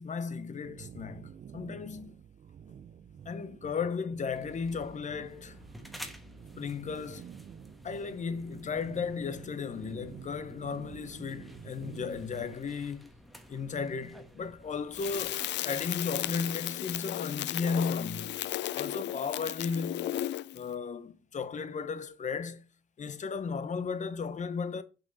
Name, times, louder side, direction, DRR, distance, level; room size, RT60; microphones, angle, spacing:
voice 1, 0.0-2.1 3.3-5.6 6.6-7.3 7.8-13.1 13.5-18.4 18.7-20.1 20.5-22.6 23.0-24.8, left 5 dB, 40° left, 0.8 m, -35 dB
sound 1, 0.6-12.5, right 8 dB, 40° right, 0.4 m, -49 dB
sound 2, 4.3-15.3, equal, ahead, 1.2 m, -52 dB
Crackle, 14.9-20.6, left 13 dB, 65° left, 0.4 m, -35 dB
5.9 x 5.6 x 4.0 m
cardioid pair, 90°, 20 cm